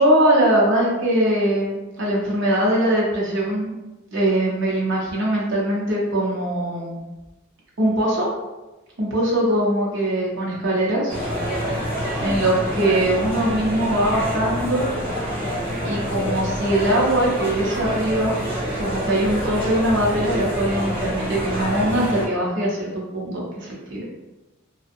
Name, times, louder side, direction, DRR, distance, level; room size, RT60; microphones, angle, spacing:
voice 1, 0.0-3.7 4.1-7.0 7.8-8.3 9.0-11.1 12.2-14.8 15.8-18.4 18.7-24.0, right 1 dB, 60° right, -4 dB, 0.8 m, -21 dB
sound 1, 11.1-22.3, equal, 25° right, 0.8 m, -27 dB
2.6 x 2.2 x 2.6 m, 1.1 s
head